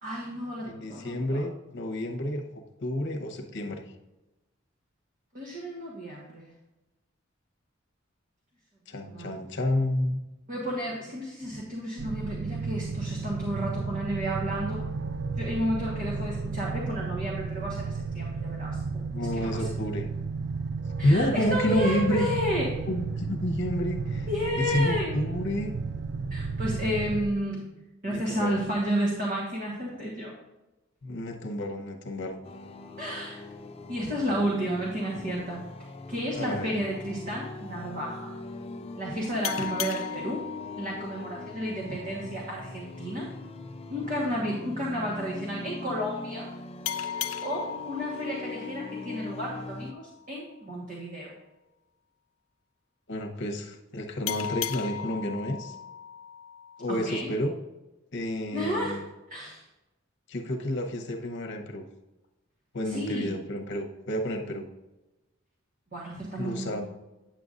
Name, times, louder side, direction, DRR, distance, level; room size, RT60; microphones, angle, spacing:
voice 1, 0.0-1.4 5.3-6.5 9.0-9.3 10.5-14.9 15.4-19.7 21.0-22.8 24.3-25.2 26.3-27.7 28.0-30.3 33.0-33.4 33.9-35.6 36.1-38.3 39.0-40.4 40.8-43.3 43.9-46.5 47.0-51.3 56.9-57.3 58.5-59.0 59.3-59.6 62.8-63.3 65.9-66.8, equal, 45° right, -4 dB, 1.3 m, -32 dB
voice 2, 0.6-3.8 8.9-10.2 19.1-20.1 21.0-22.2 22.9-24.3 24.6-25.8 28.0-28.6 31.0-32.4 36.3-36.7 53.1-55.7 56.8-57.5 58.1-59.0 60.3-61.9 62.7-64.7 66.4-66.8, left 1 dB, 60° left, 3 dB, 1.0 m, -30 dB
sound 1, 12.0-27.3, right 4 dB, 60° right, 0.4 m, -33 dB
sound 2, 32.4-49.9, left 3 dB, 30° left, 0.5 m, -41 dB
sound 3, 39.4-42.7 46.8-50.1 54.3-57.2, left 10 dB, 85° left, 0.4 m, -37 dB
8.9 x 7.7 x 2.5 m, 1.0 s
head